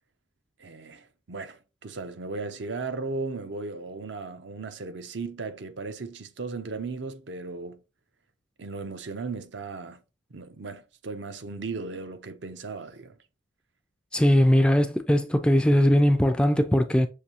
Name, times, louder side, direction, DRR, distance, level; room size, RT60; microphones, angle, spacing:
voice 1, 0.6-7.8 8.6-10.0 10.3-13.2, right 3 dB, 65° right, 0.7 m, -36 dB
voice 2, 14.1-17.1, equal, 5° left, 0.3 m, -20 dB
6.5 x 2.7 x 2.8 m
head